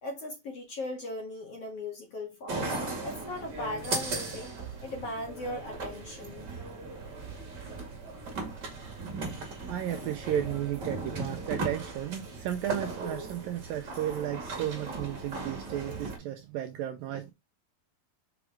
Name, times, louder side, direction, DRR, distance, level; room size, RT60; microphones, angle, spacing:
voice 1, 0.0-2.6 3.0-4.5 4.8-6.5, left 1 dB, 50° left, 2.1 m, -38 dB
sound 1, 2.5-16.2, right 3 dB, 35° right, 1.9 m, -37 dB
voice 2, 9.2-17.3, right 11 dB, 80° right, 2.1 m, -34 dB
6.1 x 5.9 x 3.5 m
omnidirectional pair, 4.7 m